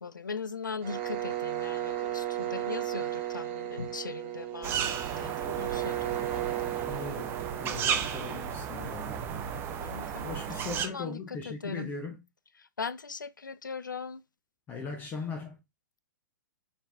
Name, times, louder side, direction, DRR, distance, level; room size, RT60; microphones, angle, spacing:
voice 1, 0.0-6.5 9.8-11.9 12.6-14.2, left 5 dB, 75° left, 0.5 m, -40 dB
sound 1, 0.8-8.6, right 13 dB, 35° right, 1.3 m, -35 dB
sound 2, 4.6-10.9, right 8 dB, 20° right, 0.7 m, -34 dB
voice 2, 6.7-9.3 10.2-12.2 14.7-15.6, left 4 dB, 20° left, 0.7 m, -39 dB
6.0 x 3.4 x 2.4 m
figure-of-eight pair, 110°, 10 cm